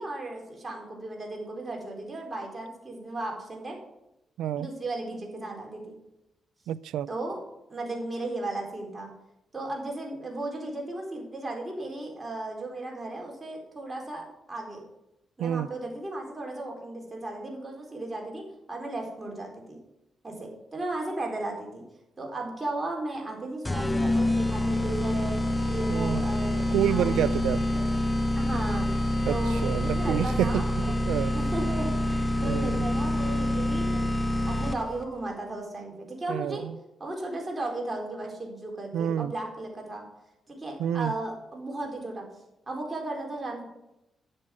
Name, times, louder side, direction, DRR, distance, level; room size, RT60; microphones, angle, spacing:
voice 1, 0.0-3.8 4.5-6.0 7.1-7.4 7.7-9.1 9.5-14.8 15.4-19.8 20.2-21.8 22.2-25.3 25.7-26.6 26.9-27.3 27.7-27.9 28.4-31.0 31.3-34.1 34.5-36.7 37.0-40.0 40.5-42.2 42.7-43.6, right 2 dB, 25° right, 4.2 m, -35 dB
voice 2, 4.4-4.7 6.7-7.1 15.4-15.7 25.9-26.2 26.7-27.7 29.3-31.4 32.4-32.9 36.3-36.8 38.9-39.3 40.8-41.1, right 11 dB, 85° right, 0.3 m, -28 dB
sound 1, 23.7-35.0, left 1 dB, 15° left, 0.9 m, -27 dB
9.8 x 7.3 x 6.1 m
supercardioid pair, 55°, 0 cm